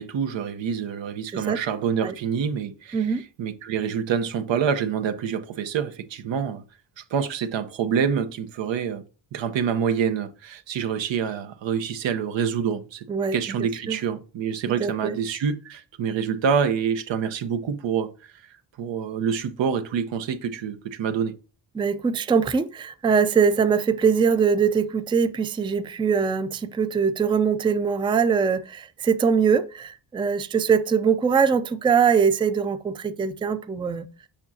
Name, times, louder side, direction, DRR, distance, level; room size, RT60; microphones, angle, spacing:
voice 1, 0.0-6.6 7.0-9.0 9.3-13.1 13.3-18.1 18.8-21.3, right 7 dB, 85° right, 1.0 m, -26 dB
voice 2, 2.9-3.2 13.1-13.4 13.9-14.0 14.8-15.2 21.7-34.1, right 6 dB, 15° right, 0.3 m, -22 dB
7.0 x 6.0 x 2.8 m
cardioid pair, 115°, 43 cm